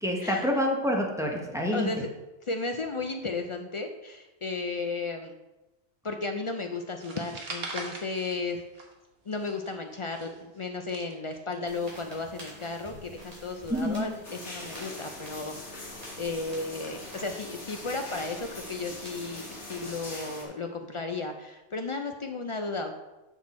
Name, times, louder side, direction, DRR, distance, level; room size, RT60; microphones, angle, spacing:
voice 1, 0.0-1.9 13.7-14.1, left 1 dB, 5° right, 0 dB, 0.9 m, -27 dB
voice 2, 1.7-2.1 2.4-5.4 6.0-8.8 9.2-22.9, left 3 dB, 55° left, 5 dB, 0.3 m, -34 dB
sound 1, 7.0-9.1 9.3-11.5, right 3 dB, 60° right, 1.2 m, -41 dB
sound 2, 11.7-20.0, left 1 dB, 35° right, 2.9 m, -49 dB
sound 3, 14.2-20.5, left 2 dB, 85° left, 1.8 m, -42 dB
6.3 x 6.0 x 4.2 m, 1.0 s
omnidirectional pair, 1.1 m